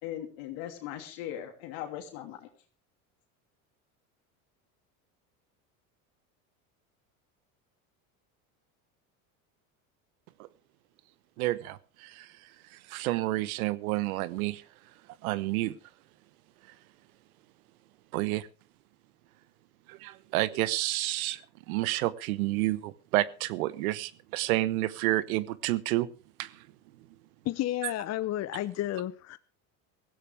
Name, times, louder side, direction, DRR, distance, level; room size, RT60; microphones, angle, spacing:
voice 1, 0.0-2.5, left 11 dB, 70° left, 3 dB, 3.0 m, -39 dB
voice 2, 11.4-12.3 12.9-14.6 15.2-15.7 18.1-18.5 19.9-21.4 21.7-26.1 26.4-26.5, right 17 dB, 80° right, 18 dB, 1.1 m, -29 dB
voice 3, 27.4-29.4, left 13 dB, 40° left, 13 dB, 0.8 m, -31 dB
17.0 x 15.5 x 3.5 m, 0.38 s
hypercardioid pair, 90°, 42 cm